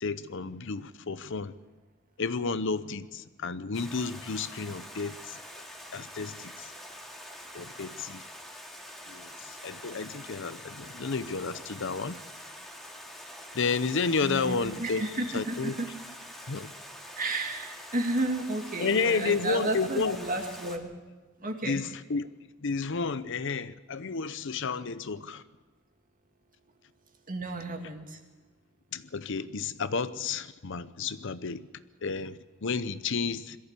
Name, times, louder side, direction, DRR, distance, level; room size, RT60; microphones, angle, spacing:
voice 1, 0.0-1.5 2.2-5.4 5.9-6.7 7.5-8.2 9.1-12.2 13.5-15.1 15.3-15.8 16.5-16.7 18.8-20.2 21.6-22.3 22.6-25.4 28.9-31.7 32.0-33.6, left 4 dB, 60° left, 14 dB, 0.7 m, -31 dB
Stream, 3.7-20.8, equal, ahead, 2.3 m, -45 dB
voice 2, 14.2-15.9 17.2-20.9 21.4-21.8 27.3-28.2, right 2 dB, 40° right, 4 dB, 2.4 m, -32 dB
22.0 x 14.5 x 8.3 m, 1.3 s
head